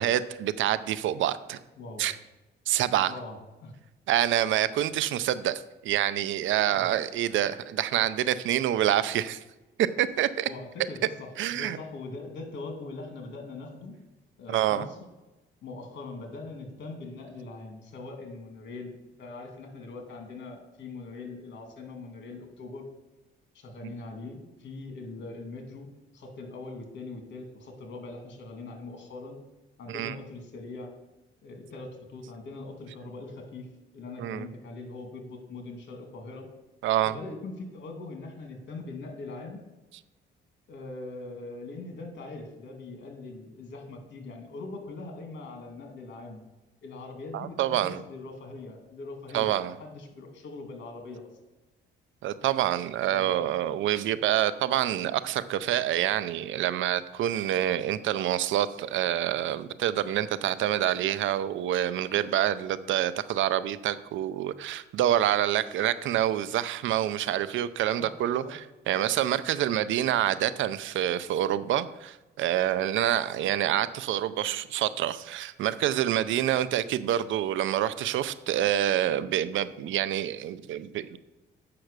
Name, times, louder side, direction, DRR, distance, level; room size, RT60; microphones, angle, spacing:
voice 1, 0.0-1.6 2.0-2.2 2.7-3.1 4.1-9.4 9.8-10.5 11.4-11.8 14.5-14.9 23.8-23.9 29.9-30.2 34.2-34.5 36.8-37.1 47.3-48.0 49.3-49.7 52.2-81.2, right 12 dB, 75° right, 15 dB, 0.6 m, -27 dB
voice 2, 3.1-3.7 6.7-6.9 10.5-14.0 14.4-15.0 15.6-22.9 23.5-25.9 26.1-29.4 29.8-30.9 31.4-33.7 33.9-36.5 37.1-39.6 40.7-46.4 46.8-51.3 53.1-53.5 68.0-68.1 68.4-68.5, left 3 dB, 65° left, 4 dB, 2.3 m, -41 dB
7.6 x 5.8 x 6.6 m, 1.1 s
cardioid pair, 90°, 20 cm